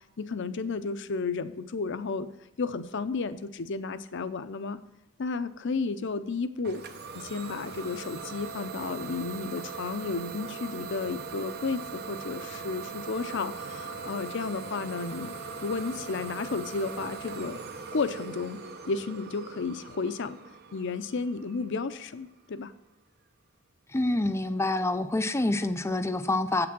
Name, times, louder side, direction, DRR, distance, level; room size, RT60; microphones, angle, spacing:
voice 1, 0.2-2.3 2.6-4.8 5.2-6.8 7.1-15.3 15.6-17.6 17.9-18.6 18.9-20.4 20.7-22.7, left 4 dB, 60° left, 12 dB, 0.6 m, -32 dB
Idling / Domestic sounds home sounds, 6.6-22.2, right 5 dB, 50° right, 0.7 m, -40 dB
voice 2, 23.9-26.7, left 2 dB, 15° left, 10 dB, 0.4 m, -27 dB
8.2 x 6.0 x 6.0 m, 0.96 s
head